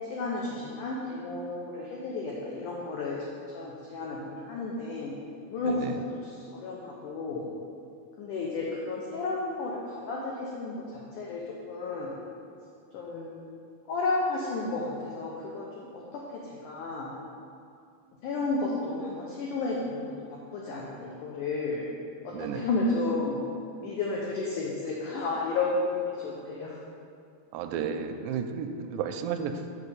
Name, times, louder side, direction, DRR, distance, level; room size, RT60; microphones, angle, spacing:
voice 1, 0.1-3.2 3.5-5.1 5.5-5.9 6.2-7.5 8.2-10.8 11.1-12.2 12.9-13.5 13.9-16.2 16.5-17.1 18.2-20.1 20.5-21.9 22.2-23.4 23.8-26.8, left 3 dB, 90° left, -4 dB, 1.7 m, -32 dB
voice 2, 5.7-6.0 22.3-22.7 27.5-29.6, right 7 dB, 85° right, 7 dB, 2.7 m, -33 dB
7.4 x 4.6 x 6.9 m, 2.4 s
omnidirectional pair, 4.9 m